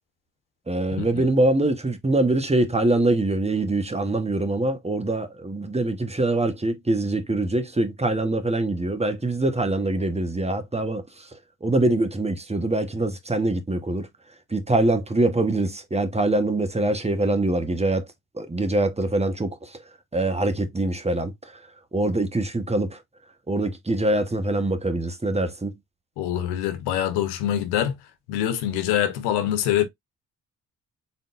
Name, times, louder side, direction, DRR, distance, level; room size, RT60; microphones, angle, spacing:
voice 1, 0.7-11.0 11.6-14.1 14.5-18.1 18.4-19.6 20.1-21.3 21.9-23.0 23.5-25.7, right 2 dB, 15° right, 1.4 m, -24 dB
voice 2, 26.2-28.0 28.3-29.8, left 11 dB, 90° left, 1.0 m, -24 dB
4.2 x 3.7 x 2.6 m
supercardioid pair, 55°, 38 cm